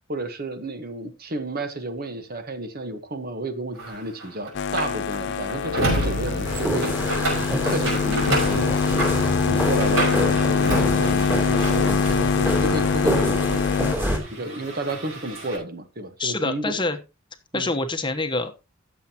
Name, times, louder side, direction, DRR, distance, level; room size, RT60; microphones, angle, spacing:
voice 1, 0.1-16.8 17.5-17.7, right 1 dB, 45° right, 9 dB, 1.2 m, -32 dB
sound 1, 3.8-12.5 12.8-15.6, right 1 dB, 75° right, 6.0 m, -30 dB
sound 2, 4.5-14.0, left 6 dB, 55° left, 0.4 m, -24 dB
sound 3, 6.4-14.2, equal, 10° right, 3.1 m, -27 dB
voice 2, 16.2-17.0 17.5-18.5, left 2 dB, 25° left, 7 dB, 1.0 m, -26 dB
16.0 x 7.3 x 2.9 m, 0.28 s
head